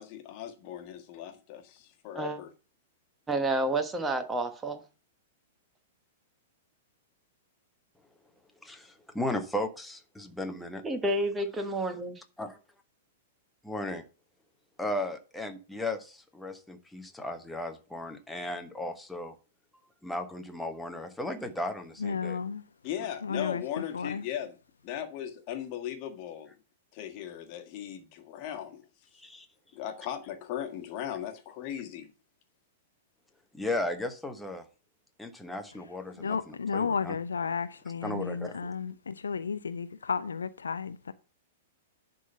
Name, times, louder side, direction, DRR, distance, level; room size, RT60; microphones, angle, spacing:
voice 1, 0.0-2.5 22.8-24.5 24.8-26.5 26.9-28.9 29.7-32.1, left 10 dB, 40° left, 1.5 m, -38 dB
voice 2, 3.3-4.8 10.8-12.2, right 1 dB, 15° right, 1.3 m, -30 dB
voice 3, 8.6-10.8 12.4-12.6 13.6-14.0 14.8-19.3 20.0-22.4 29.1-29.5 33.5-34.6 35.2-37.1 38.0-38.7, left 1 dB, 5° left, 1.1 m, -36 dB
voice 4, 22.0-22.7 23.2-24.3 36.2-41.1, left 5 dB, 75° left, 0.5 m, -33 dB
11.0 x 3.9 x 5.5 m
figure-of-eight pair, 100°, 0 cm